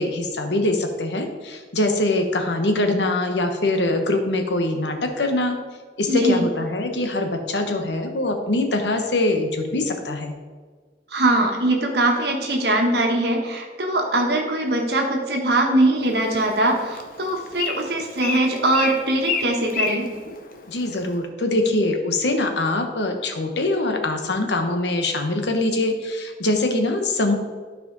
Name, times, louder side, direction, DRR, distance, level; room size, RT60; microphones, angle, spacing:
voice 1, 0.0-5.6 6.0-10.3 20.7-27.3, left 2 dB, 80° left, 5 dB, 1.1 m, -23 dB
voice 2, 6.1-6.4 11.1-20.1, right 1 dB, 65° right, 2 dB, 1.4 m, -21 dB
Bird, 16.0-21.2, left 5 dB, 50° left, 0.8 m, -31 dB
12.0 x 4.9 x 4.0 m, 1.5 s
head